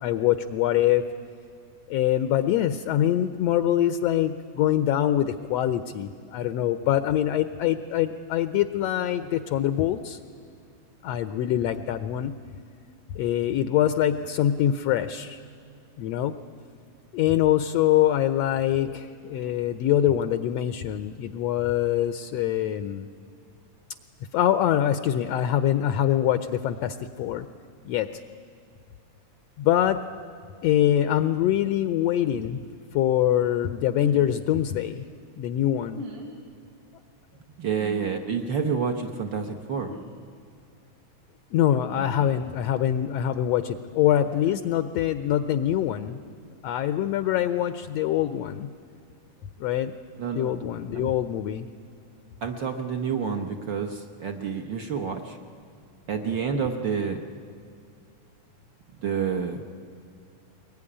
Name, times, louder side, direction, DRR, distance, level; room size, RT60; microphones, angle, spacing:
voice 1, 0.0-1.1 1.9-10.2 11.0-12.3 13.1-15.4 16.0-16.3 17.1-23.1 24.3-27.5 27.8-28.4 29.6-30.0 30.6-32.6 32.9-35.0 35.4-36.0 41.5-46.2 46.6-48.7 49.6-49.9 50.3-51.7, left 11 dB, 75° left, 11 dB, 1.6 m, -24 dB
sound 1, 34.0-34.3 35.9-36.3 37.8-38.0 39.8-40.0 41.9-42.3 44.4-44.6, right 2 dB, 85° right, 4.7 m, -39 dB
voice 2, 37.6-39.9 50.2-50.5 50.9-51.1 52.4-55.4 56.1-57.2 59.0-59.6, right 6 dB, 60° right, 5 dB, 1.2 m, -29 dB
23.0 x 20.5 x 9.9 m, 2.4 s
omnidirectional pair, 3.5 m